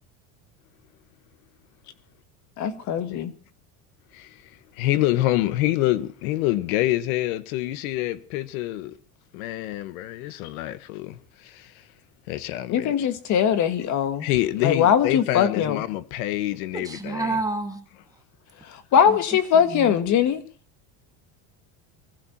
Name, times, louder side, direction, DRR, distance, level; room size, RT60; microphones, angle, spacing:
voice 1, 2.6-3.3 12.7-14.3 14.6-15.8 18.6-20.4, left 8 dB, 45° left, 1.8 m, -21 dB
voice 2, 4.1-9.0 9.3-11.7 12.3-12.9 14.2-17.4, left 15 dB, 85° left, 1.3 m, -26 dB
voice 3, 16.7-17.8 19.1-19.2 19.5-20.0, right 3 dB, 10° right, 2.2 m, -30 dB
24.0 x 15.0 x 2.9 m
cardioid pair, 145°, 42 cm